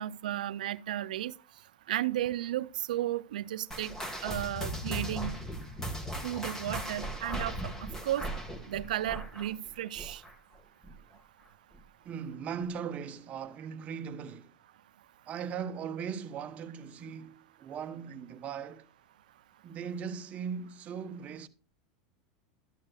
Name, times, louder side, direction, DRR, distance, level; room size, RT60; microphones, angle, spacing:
voice 1, 0.0-1.3 1.9-3.9 4.2-5.4 6.2-7.7 8.0-8.3 8.7-10.2, right 12 dB, 90° right, 0.4 m, -33 dB
sound 1, 3.7-10.6 10.8-11.2 11.7-11.8 12.6-12.7, equal, 10° left, 1.8 m, -38 dB
voice 2, 12.0-14.6 15.3-18.9 19.6-21.5, right 7 dB, 35° right, 0.9 m, -39 dB
13.0 x 9.6 x 2.4 m
supercardioid pair, 130°, 4 cm